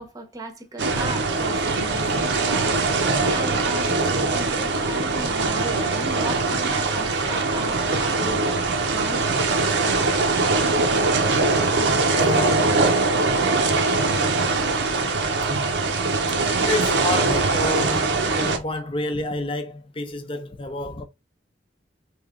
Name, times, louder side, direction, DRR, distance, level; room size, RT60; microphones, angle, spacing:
voice 1, 0.0-2.8 3.3-8.4 8.9-9.4 15.4-15.6, right 2 dB, 20° right, 0.8 m, -35 dB
sound 1, 0.8-18.6, right 3 dB, 75° right, 0.7 m, -22 dB
voice 2, 12.1-12.7 13.4-13.5 16.7-21.0, left 1 dB, 30° left, 0.6 m, -29 dB
3.3 x 2.8 x 3.7 m
head